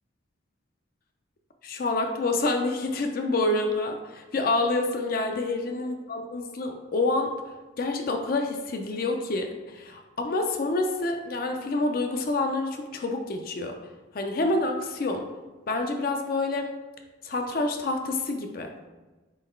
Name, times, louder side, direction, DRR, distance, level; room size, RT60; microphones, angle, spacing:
voice 1, 1.6-7.3 7.8-13.8 14.1-15.3 15.7-16.7 17.2-18.7, left 2 dB, 45° left, 4 dB, 0.4 m, -27 dB
3.8 x 3.0 x 4.4 m, 1.2 s
head